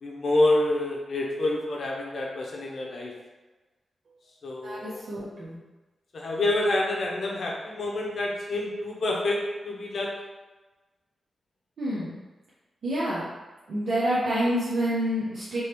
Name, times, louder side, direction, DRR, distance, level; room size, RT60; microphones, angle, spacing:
voice 1, 0.0-3.1 4.4-5.1 6.1-10.1, left 2 dB, 50° left, -2 dB, 0.7 m, -27 dB
voice 2, 4.6-5.6 11.8-12.2 12.8-13.3 13.7-15.6, equal, 65° right, -8 dB, 0.7 m, -28 dB
3.5 x 3.0 x 2.9 m, 1.2 s
wide cardioid pair, 175°, 0 cm